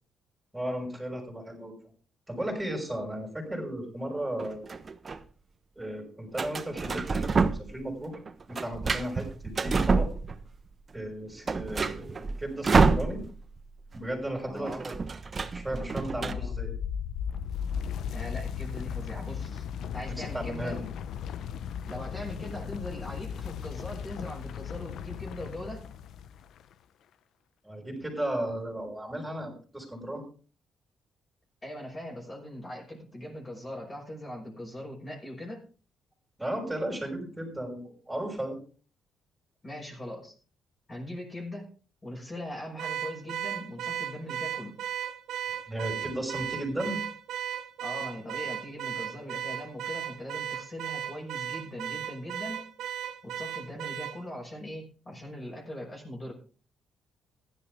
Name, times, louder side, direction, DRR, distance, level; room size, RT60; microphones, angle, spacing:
voice 1, 0.5-1.8 2.3-4.8 5.8-8.2 8.5-10.1 10.9-13.2 13.9-14.7 15.5-16.7 20.1-20.9 27.6-30.2 36.4-38.6 45.7-47.0, right 1 dB, 10° right, -1 dB, 6.0 m, -35 dB
sound 1, 4.4-5.2 6.4-7.8 8.1-10.6 11.0-11.1 11.3-13.6 13.8-14.0 14.2-16.3, right 4 dB, 35° right, 1.1 m, -27 dB
voice 2, 14.4-14.8 16.2-16.5 18.1-19.6 19.9-20.8 21.9-25.9 31.6-35.6 39.6-40.3 40.9-41.7 42.0-44.8 47.8-52.7 53.2-56.3, left 1 dB, 25° left, -1 dB, 5.7 m, -40 dB
sound 2, 15.9-26.6, left 8 dB, 75° left, 0.7 m, -36 dB
Car / Alarm, 42.8-54.2, right 10 dB, 75° right, 1.0 m, -35 dB
15.5 x 11.5 x 3.5 m, 0.37 s
cardioid pair, 90°, 0 cm